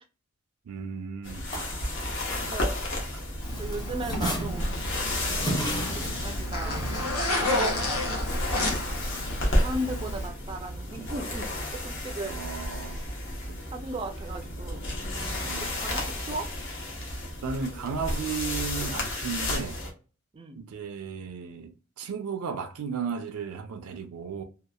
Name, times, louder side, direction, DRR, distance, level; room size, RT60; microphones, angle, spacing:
voice 1, 0.7-1.5 2.3-2.5 3.1-3.2 12.2-13.0 13.5-13.6 15.4-15.7 17.4-19.8 20.5-24.4, right 6 dB, 85° right, 0.4 m, -35 dB
sound 1, 1.2-19.9, left 1 dB, 55° left, 0.9 m, -32 dB
sound 2, 1.5-3.2 3.5-7.1, right 1 dB, 20° left, 0.6 m, -34 dB
voice 2, 2.3-2.8 3.6-4.7 5.9-6.8 7.2-8.0 8.8-9.0 9.4-11.5 11.8-12.4 13.7-14.9 15.6-16.5 20.3-20.6, right 1 dB, 25° right, 0.3 m, -37 dB
Zipper (clothing), 3.4-10.3, left 1 dB, 90° left, 1.0 m, -31 dB
2.8 x 2.3 x 2.2 m
head